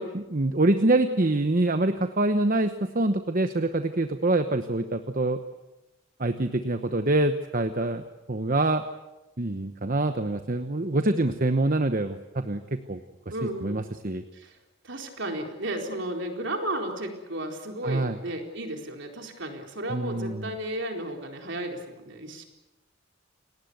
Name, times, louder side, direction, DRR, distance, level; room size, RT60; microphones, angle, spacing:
voice 1, 0.0-5.4 6.2-8.0 8.3-8.8 9.4-13.0 13.6-14.2 17.8-18.2 19.9-20.5, right 2 dB, 40° right, 8 dB, 1.0 m, -25 dB
voice 2, 13.3-13.8 14.3-14.6 14.8-22.4, right 1 dB, 60° right, 3 dB, 4.3 m, -34 dB
28.5 x 19.0 x 8.1 m, 1.0 s
head